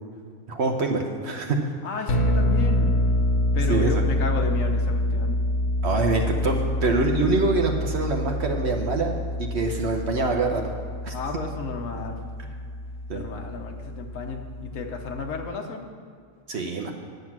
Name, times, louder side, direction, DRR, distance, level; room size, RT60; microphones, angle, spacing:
voice 1, 0.5-1.6 3.7-4.0 5.8-10.7 11.0-11.1 13.1-13.3 16.5-16.9, right 3 dB, 60° right, 2 dB, 1.0 m, -25 dB
voice 2, 1.8-3.0 3.5-5.4 9.6-9.7 11.1-12.2 13.1-15.9, left 4 dB, 80° left, 3 dB, 1.3 m, -32 dB
sound 1, 2.1-15.5, left 1 dB, 55° left, 1.1 m, -26 dB
9.5 x 7.6 x 6.0 m, 2.1 s
omnidirectional pair, 1.4 m